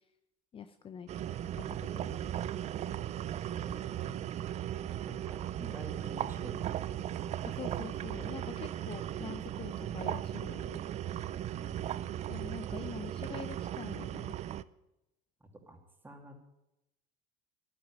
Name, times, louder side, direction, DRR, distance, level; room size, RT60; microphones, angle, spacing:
voice 1, 0.5-1.1 1.6-2.2 7.5-10.8 12.3-14.4, left 7 dB, 30° left, 10 dB, 0.6 m, -45 dB
sound 1, 1.1-14.6, right 11 dB, 40° right, 0.5 m, -37 dB
voice 2, 1.9-2.5 3.6-4.1 5.1-7.2 11.6-12.5 15.4-15.8 16.0-16.3, right 1 dB, 10° right, 2 dB, 2.6 m, -50 dB
11.5 x 10.0 x 9.1 m, 0.90 s
cardioid pair, 125°, 18 cm